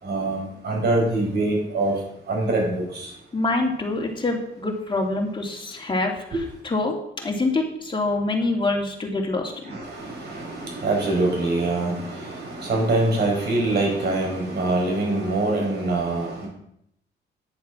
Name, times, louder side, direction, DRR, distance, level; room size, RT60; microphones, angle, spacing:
voice 1, 0.0-2.0 2.3-3.1 6.3-6.4 9.7-16.5, right 2 dB, 55° right, 0 dB, 5.3 m, -24 dB
voice 2, 3.3-9.7, left 2 dB, 25° left, 1 dB, 2.8 m, -26 dB
10.5 x 7.2 x 6.2 m, 0.74 s
cardioid pair, 90°, 20 cm